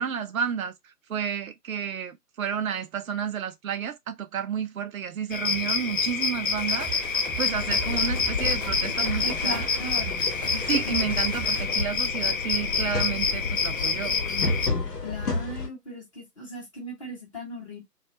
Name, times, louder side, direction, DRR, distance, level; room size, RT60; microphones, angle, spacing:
voice 1, 0.0-6.9 7.4-9.6 10.7-14.2, right 7 dB, 60° right, 0.5 m, -31 dB
sound 1, 5.3-14.7, left 5 dB, 55° left, 0.5 m, -27 dB
sound 2, 6.5-11.7, right 5 dB, 10° right, 0.6 m, -39 dB
sound 3, 7.5-15.7, left 3 dB, 75° left, 0.9 m, -32 dB
voice 2, 9.2-10.2 10.5-11.0 15.0-17.8, equal, 20° left, 0.8 m, -37 dB
2.3 x 2.3 x 2.7 m
figure-of-eight pair, 140°, 48 cm